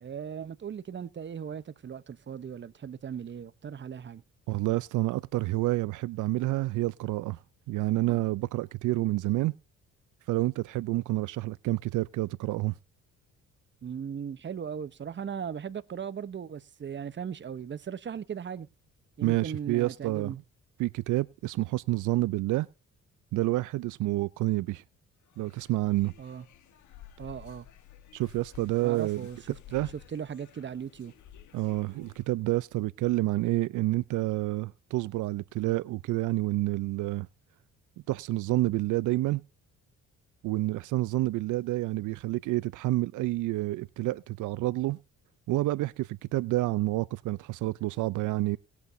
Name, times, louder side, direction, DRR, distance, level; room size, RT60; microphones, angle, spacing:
voice 1, 0.0-4.2 13.8-18.7 19.2-20.4 26.2-26.4 27.2-27.7 28.8-29.6 30.1-31.1, right 7 dB, 40° right, 0.9 m, -38 dB
voice 2, 4.5-7.4 7.7-9.5 10.3-12.7 19.2-20.3 20.8-22.7 23.3-24.8 25.4-26.1 28.1-29.2 29.7-29.9 31.5-37.3 38.1-39.4 40.4-45.0 45.5-48.6, right 18 dB, 80° right, 0.5 m, -28 dB
sound 1, 25.2-32.4, left 11 dB, 75° left, 1.4 m, -53 dB
19.5 x 8.3 x 2.7 m
cardioid pair, 90°, 30 cm